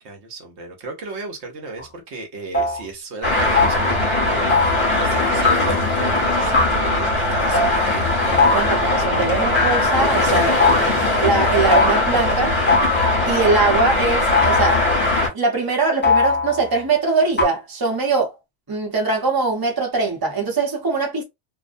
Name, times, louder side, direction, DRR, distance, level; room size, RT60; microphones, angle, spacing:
voice 1, 0.0-8.6 10.2-11.2, right 2 dB, 70° right, 1.0 m, -34 dB
sound 1, 1.8-1.9 2.5-2.8 3.5-3.9 4.5-4.9 5.4-5.9 6.5-6.9 7.5-7.8 8.4-8.9 9.5-10.2 10.6-11.1 11.7-12.2 12.7-13.4 14.3-15.0 16.0-16.7 17.4-17.5, left 3 dB, 10° left, 0.6 m, -20 dB
Traffic noise roadway noise, 3.2-15.3, left 2 dB, 50° left, 1.2 m, -20 dB
voice 2, 8.5-10.5 11.2-12.5 13.3-14.8 15.3-18.3 18.7-21.2, right 4 dB, 20° right, 0.7 m, -21 dB
2.6 x 2.1 x 2.5 m
omnidirectional pair, 1.2 m